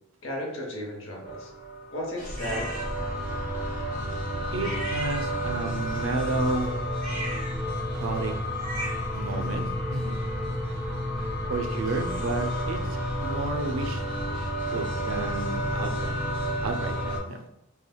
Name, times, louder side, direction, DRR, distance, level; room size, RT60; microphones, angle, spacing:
voice 1, 0.2-1.5 1.9-2.8, equal, 75° left, -1 dB, 0.8 m, -34 dB
sound 1, 1.2-17.2, equal, 40° left, 1.2 m, -30 dB
sound 2, 2.4-2.9 4.6-5.7 6.9-9.2, right 1 dB, 35° right, 0.9 m, -37 dB
voice 2, 4.5-6.7 7.9-8.3 9.1-9.7 9.9-10.2 11.5-12.8 13.2-14.0 14.7-16.1 16.6-17.4, right 3 dB, 75° right, 6 dB, 0.4 m, -31 dB
3.4 x 2.2 x 2.2 m, 0.85 s
head